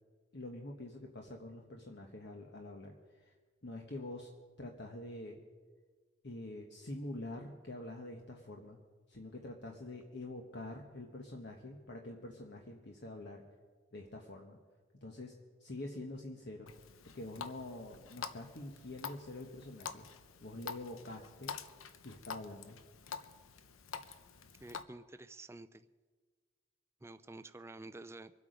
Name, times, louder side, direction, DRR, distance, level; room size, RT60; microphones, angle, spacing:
voice 1, 0.3-3.3 3.6-4.3 4.6-5.4 6.2-8.8 9.1-13.4 13.9-14.6 15.0-15.3 15.6-16.7 17.0-20.1 20.4-21.5 22.0-22.8, left 1 dB, 55° left, 1 dB, 1.2 m, -46 dB
Water tap faucet, 16.7-24.8, left 6 dB, 85° left, 0.8 m, -47 dB
voice 2, 24.6-25.9 27.0-28.3, right 2 dB, 15° right, 11 dB, 0.4 m, -50 dB
25.0 x 8.4 x 5.1 m, 1.5 s
head